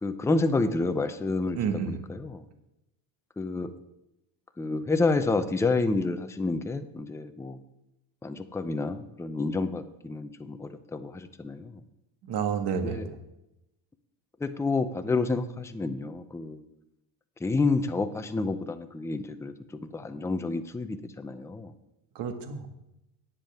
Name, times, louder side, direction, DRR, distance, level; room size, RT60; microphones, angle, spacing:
voice 1, 0.0-1.6 1.9-2.4 3.4-3.7 4.6-7.6 8.2-11.8 12.8-13.0 14.4-16.6 17.4-19.5 19.8-21.7, left 3 dB, 5° left, 9 dB, 0.6 m, -29 dB
voice 2, 1.6-2.0 12.3-13.2 22.2-22.7, right 6 dB, 55° right, 5 dB, 1.8 m, -30 dB
18.5 x 7.4 x 3.6 m, 0.90 s
cardioid pair, 125°, 48 cm